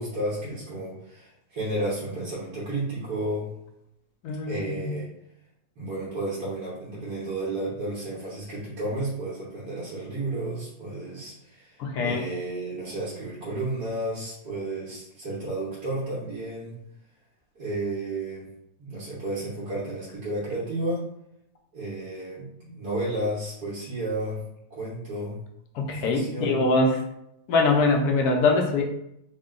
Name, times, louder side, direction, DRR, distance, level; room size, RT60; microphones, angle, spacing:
voice 1, 0.0-3.5 4.5-5.1 5.8-16.8 17.5-18.5 18.8-21.1 21.7-25.4 25.9-26.6, right 1 dB, 75° right, -9 dB, 1.7 m, -32 dB
voice 2, 4.2-4.9 11.8-12.2 25.7-27.0 27.5-28.8, left 3 dB, 75° left, 2 dB, 1.1 m, -23 dB
3.7 x 2.2 x 3.7 m, 0.79 s
omnidirectional pair, 1.7 m